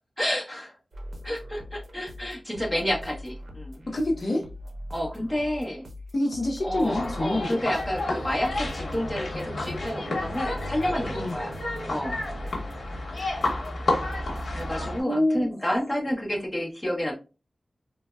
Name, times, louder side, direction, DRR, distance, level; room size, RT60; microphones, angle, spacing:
voice 1, 0.2-0.8 1.2-3.8 4.9-5.9 6.6-11.5 11.9-12.2 14.5-17.1, equal, 5° left, -1 dB, 0.8 m, -30 dB
sound 1, 0.9-14.9, left 1 dB, 75° right, 0.6 m, -41 dB
voice 2, 3.9-4.4 6.1-7.6 8.1-8.4 11.1-11.3 15.1-15.6, left 1 dB, 50° left, 1 dB, 0.5 m, -27 dB
sound 2, 6.9-15.0, left 2 dB, 75° left, 0.8 m, -31 dB
3.2 x 2.0 x 2.2 m, 0.31 s
wide cardioid pair, 80°, 0 cm